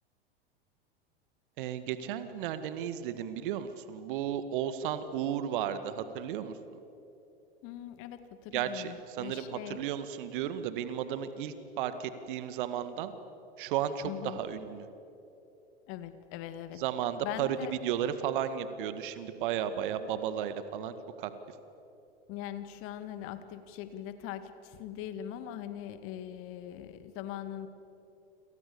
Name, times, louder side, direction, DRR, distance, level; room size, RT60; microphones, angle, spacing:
voice 1, 1.6-6.5 8.5-13.1 13.6-14.9 16.8-17.5 17.8-21.3, right 9 dB, 55° right, 11 dB, 2.0 m, -34 dB
voice 2, 7.6-9.8 14.0-14.4 15.9-16.8 17.2-17.7 22.3-27.7, left 11 dB, 45° left, 10 dB, 2.2 m, -41 dB
29.5 x 27.5 x 7.1 m, 2.9 s
figure-of-eight pair, 85°, 30 cm